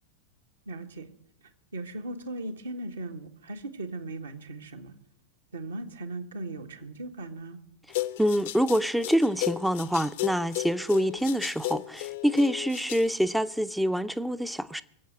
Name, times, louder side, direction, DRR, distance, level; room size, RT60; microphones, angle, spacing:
voice 1, 0.7-1.1 1.7-4.9 5.5-7.6, right 2 dB, 70° right, 1.4 m, -38 dB
sound 1, 7.9-13.1, left 16 dB, 55° left, 0.7 m, -34 dB
voice 2, 8.2-14.8, equal, ahead, 0.5 m, -26 dB
21.5 x 7.9 x 7.8 m
figure-of-eight pair, 90°, 0 cm